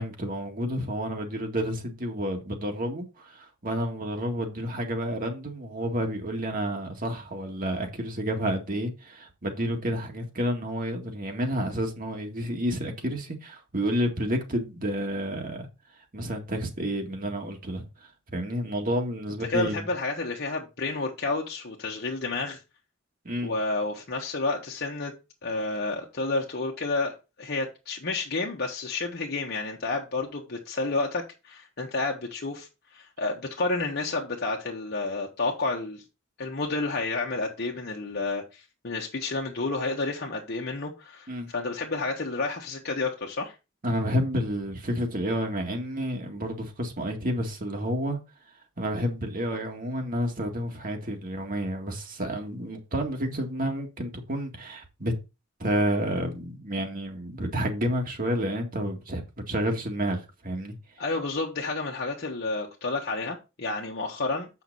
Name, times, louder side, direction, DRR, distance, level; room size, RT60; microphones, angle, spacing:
voice 1, 0.0-15.7 16.1-17.8 18.3-19.9 23.3-23.5 41.3-41.5 43.8-48.2 48.8-55.1 55.6-60.7, equal, 45° right, 1.9 m, -30 dB
voice 2, 19.5-22.6 23.4-25.1 25.4-36.0 36.4-43.5 61.0-64.5, left 3 dB, 55° left, 1.3 m, -30 dB
8.0 x 5.8 x 4.1 m
head